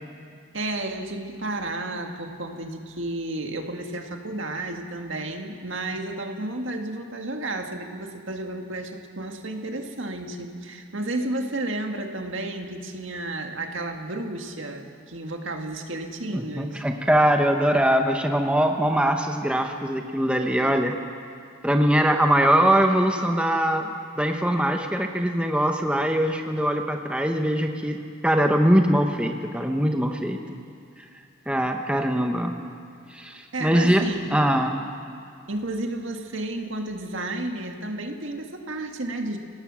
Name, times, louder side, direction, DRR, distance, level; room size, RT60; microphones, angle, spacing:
voice 1, 0.5-16.8 33.5-34.4 35.5-39.4, right 2 dB, 65° right, 3 dB, 1.9 m, -32 dB
voice 2, 16.3-21.0 21.6-23.9 24.2-28.0 28.2-30.4 31.5-32.6 33.1-34.8, equal, 5° right, 3 dB, 1.0 m, -22 dB
29.5 x 18.5 x 6.3 m, 2.4 s
head